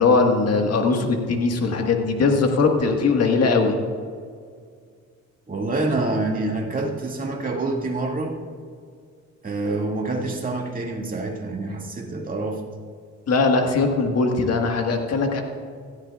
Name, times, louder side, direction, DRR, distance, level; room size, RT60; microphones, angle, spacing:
voice 1, 0.0-3.7 13.3-15.4, left 4 dB, 55° left, 3 dB, 1.6 m, -20 dB
voice 2, 5.5-8.4 9.4-12.6, right 2 dB, 30° right, -1 dB, 2.2 m, -26 dB
17.0 x 13.0 x 2.4 m, 2.1 s
cardioid pair, 90°, 30 cm